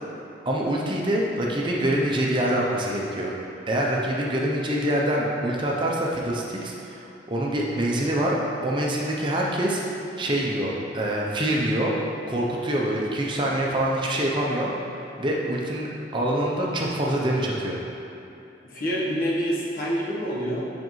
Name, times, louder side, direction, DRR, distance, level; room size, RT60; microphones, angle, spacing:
voice 1, 0.5-3.3 3.7-8.4 8.6-9.8 10.2-11.9 12.3-14.7 15.2-17.8, right 1 dB, 25° right, -3 dB, 0.6 m, -25 dB
voice 2, 18.6-20.6, equal, 50° left, -5 dB, 1.1 m, -27 dB
7.6 x 5.1 x 3.1 m, 2.7 s
head